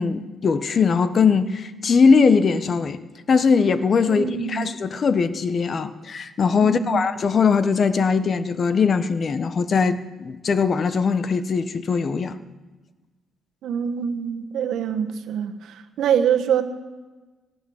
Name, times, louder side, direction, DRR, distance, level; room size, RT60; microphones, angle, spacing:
voice 1, 0.0-3.0 3.3-12.4, left 5 dB, 50° left, 12 dB, 1.0 m, -20 dB
voice 2, 4.1-4.7 6.6-7.0 13.6-16.6, right 8 dB, 80° right, 7 dB, 1.2 m, -24 dB
18.5 x 10.0 x 6.4 m, 1.3 s
cardioid pair, 85°, 0 cm